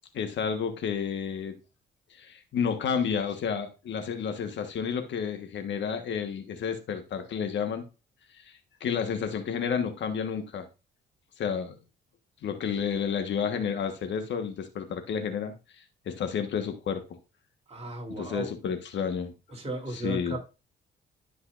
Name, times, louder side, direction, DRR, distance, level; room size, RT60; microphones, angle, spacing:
voice 1, 0.1-1.6 2.1-7.8 8.4-10.7 11.4-11.8 12.4-17.0 18.2-19.3 19.9-20.4, left 7 dB, 65° left, 1.4 m, -31 dB
voice 2, 17.7-18.5 19.5-20.4, right 2 dB, 30° right, 3.4 m, -35 dB
12.5 x 5.5 x 2.5 m
cardioid pair, 90°, 20 cm